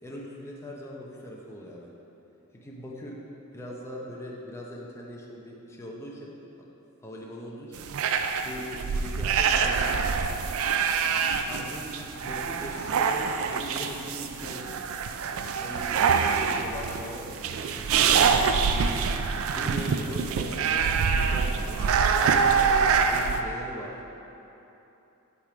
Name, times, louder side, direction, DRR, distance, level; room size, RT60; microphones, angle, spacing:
voice 1, 0.0-1.9 2.5-3.2 3.5-6.4 7.0-7.9 8.4-10.2 11.5-15.0 15.6-18.9 19.5-22.7 23.1-23.9, equal, 10° left, -3 dB, 0.7 m, -40 dB
sound 1, 7.8-23.4, right 6 dB, 65° right, 0.3 m, -25 dB
8.4 x 3.5 x 5.0 m, 3.0 s
head